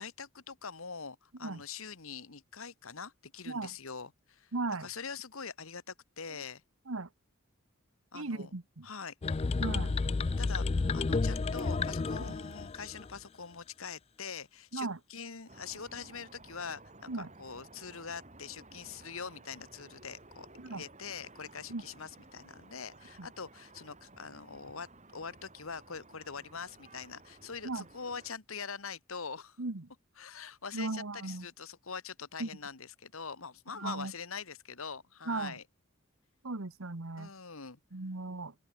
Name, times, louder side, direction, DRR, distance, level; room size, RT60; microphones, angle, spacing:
voice 1, 0.0-4.5 4.8-6.6 8.1-8.5 8.8-9.1 10.4-24.9 25.1-29.6 30.2-35.6 37.2-37.8, left 5 dB, 75° left, 1.7 m, -44 dB
voice 2, 4.5-4.9 6.3-6.4 6.9-7.1 8.1-8.9 9.6-9.9 12.2-12.3 14.7-15.0 17.1-17.3 20.6-20.8 21.7-21.8 23.2-23.3 27.6-27.8 29.6-29.9 30.7-31.5 32.4-32.5 33.8-34.1 35.3-35.5 36.4-37.3 37.9-38.5, right 3 dB, 70° right, 1.3 m, -37 dB
sound 1, 9.2-13.2, left 3 dB, 30° left, 0.3 m, -31 dB
sound 2, 15.5-28.3, right 2 dB, 30° right, 6.8 m, -56 dB
open air
head